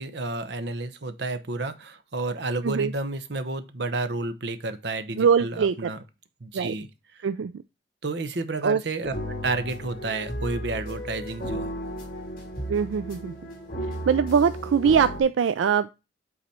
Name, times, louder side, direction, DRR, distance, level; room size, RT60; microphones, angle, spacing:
voice 1, 0.0-6.0 6.4-6.9 7.2-7.3 8.0-9.1 9.4-11.7, right 3 dB, 60° right, 0.9 m, -31 dB
voice 2, 5.2-5.9 6.5-6.7 7.2-7.5 8.6-8.8 12.7-13.3 14.1-15.9, right 7 dB, 85° right, 0.4 m, -22 dB
sound 1, 9.0-15.2, equal, 50° left, 3.3 m, -34 dB
8.4 x 4.0 x 4.2 m
head